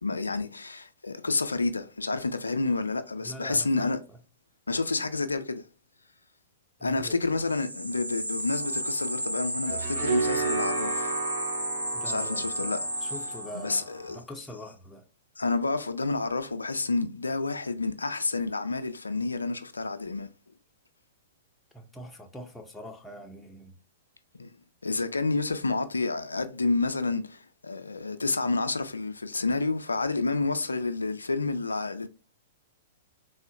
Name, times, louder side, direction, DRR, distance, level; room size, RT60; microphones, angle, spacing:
voice 1, 0.0-4.0 4.7-5.7 6.8-11.2 12.1-13.1 13.5-14.2 15.4-20.3 24.4-24.5 24.8-32.1, left 3 dB, 80° left, 0.3 m, -29 dB
voice 2, 3.2-4.2 6.8-7.1 11.9-12.7 13.0-15.0 21.7-23.7, equal, 5° left, 0.5 m, -43 dB
sound 1, 7.3-13.9, right 1 dB, 90° right, 0.3 m, -33 dB
sound 2, 8.6-14.2, right 4 dB, 55° right, 1.1 m, -34 dB
3.6 x 2.0 x 2.4 m
figure-of-eight pair, 105°, 0 cm